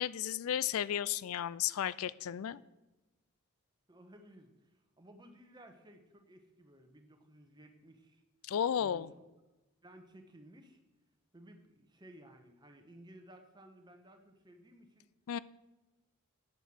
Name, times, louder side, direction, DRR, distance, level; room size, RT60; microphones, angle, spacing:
voice 1, 0.0-2.6 8.5-9.1 15.3-15.4, left 9 dB, 75° left, 19 dB, 0.4 m, -33 dB
voice 2, 3.9-8.2 8.8-9.2 9.8-10.8 11.3-15.1, right 1 dB, 20° right, 5 dB, 1.2 m, -57 dB
9.1 x 9.1 x 6.4 m, 1.1 s
head